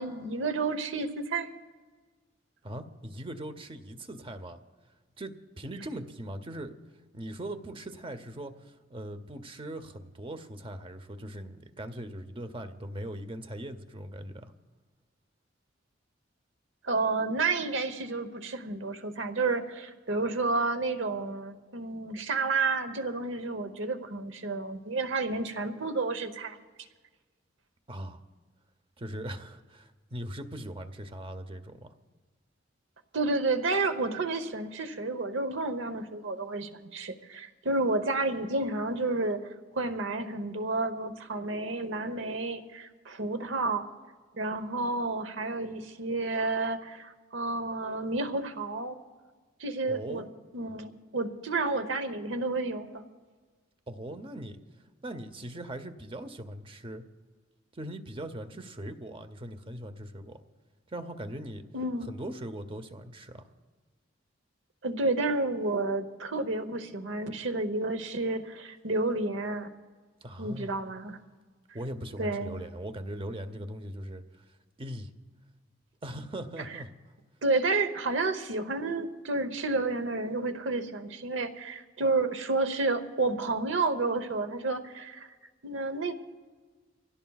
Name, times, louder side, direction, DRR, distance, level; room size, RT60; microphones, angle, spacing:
voice 1, 0.0-1.5 16.8-26.6 33.1-39.4 39.7-43.8 44.3-49.0 49.6-50.2 50.5-53.0 61.7-62.1 64.8-69.7 70.4-71.2 72.2-72.6 77.4-85.3 85.6-86.1, right 3 dB, 70° right, 9 dB, 1.0 m, -30 dB
voice 2, 2.6-4.6 5.2-6.7 7.1-14.5 27.9-28.2 29.0-31.9 49.9-50.3 53.9-54.6 55.0-57.0 57.7-60.4 60.9-61.7 62.1-63.5 70.2-70.8 71.7-74.2 74.8-75.1 76.0-76.9, right 1 dB, 30° right, 9 dB, 0.8 m, -40 dB
25.0 x 16.5 x 2.4 m, 1.4 s
head